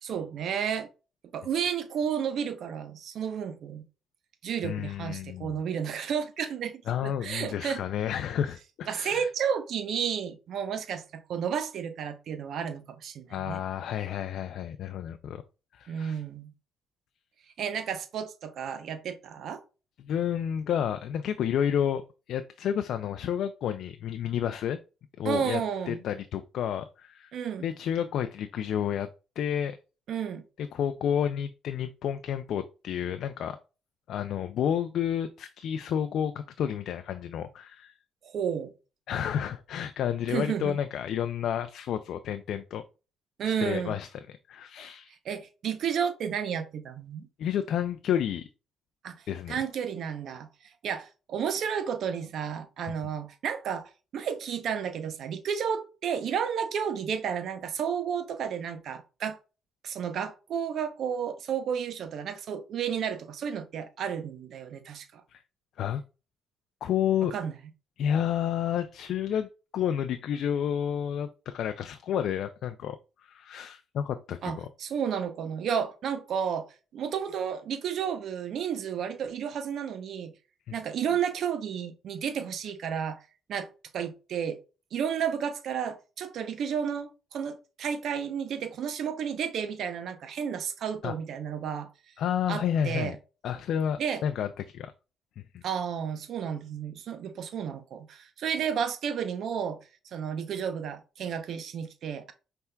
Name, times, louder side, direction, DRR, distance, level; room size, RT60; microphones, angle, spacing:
voice 1, 0.0-0.9 1.3-3.8 4.4-7.8 8.9-13.6 15.9-16.5 17.6-19.6 25.2-26.0 27.3-27.7 30.1-30.4 38.2-38.7 40.3-40.8 43.4-43.9 45.2-47.3 49.0-49.1 49.5-50.5 50.8-59.4 59.8-65.2 67.3-67.5 74.4-76.7 76.9-80.3 80.7-83.2 83.5-84.6 84.9-91.9 92.5-93.2 94.0-94.2 95.6-99.8 100.1-102.3, right 7 dB, 70° right, 0.6 m, -32 dB
voice 2, 4.6-5.6 6.4-6.5 6.9-9.3 13.3-15.4 15.7-16.2 20.0-22.0 22.3-24.8 25.2-25.6 25.9-27.3 27.6-29.1 29.4-29.8 30.6-33.6 34.1-37.9 39.1-42.8 43.4-45.1 47.4-48.5 49.3-49.6 65.3-65.4 65.8-66.0 66.8-67.3 68.0-69.5 69.7-73.0 73.2-74.7 80.7-80.8 91.0-91.2 92.2-93.2 93.4-94.9 95.4-95.6, left 9 dB, 75° left, 0.3 m, -30 dB
5.6 x 3.4 x 2.2 m
cardioid pair, 90°, 0 cm